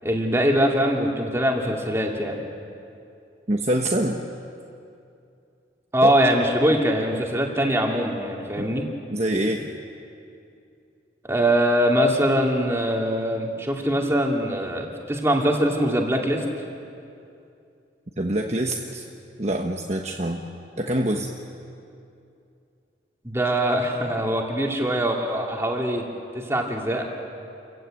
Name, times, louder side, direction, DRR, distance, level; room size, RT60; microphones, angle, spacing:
voice 1, 0.0-2.4 5.9-8.9 11.2-16.4 23.2-26.1 26.3-27.0, equal, 15° right, 0 dB, 2.6 m, -22 dB
voice 2, 3.5-4.2 6.0-6.1 8.6-8.7 9.1-9.7 18.2-19.0 19.4-20.4 20.8-21.3, right 1 dB, 40° right, 1 dB, 1.2 m, -25 dB
29.0 x 15.5 x 9.1 m, 2.6 s
head